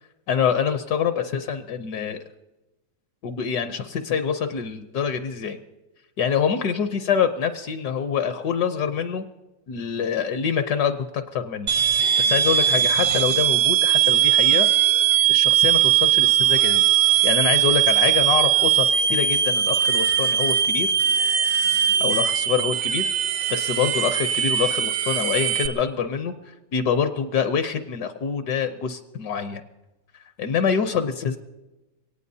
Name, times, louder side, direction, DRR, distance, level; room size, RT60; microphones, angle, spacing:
voice 1, 0.3-2.2 3.2-5.6 6.2-9.3 9.7-11.7 12.2-14.7 15.3-16.9 17.2-20.9 22.0-23.1 23.5-26.3 26.7-29.6 30.4-31.4, left 7 dB, 70° left, 8 dB, 1.3 m, -25 dB
sound 1, 11.7-25.7, right 10 dB, 75° right, 1.4 m, -20 dB
23.5 x 18.0 x 2.7 m, 1.1 s
omnidirectional pair, 1.8 m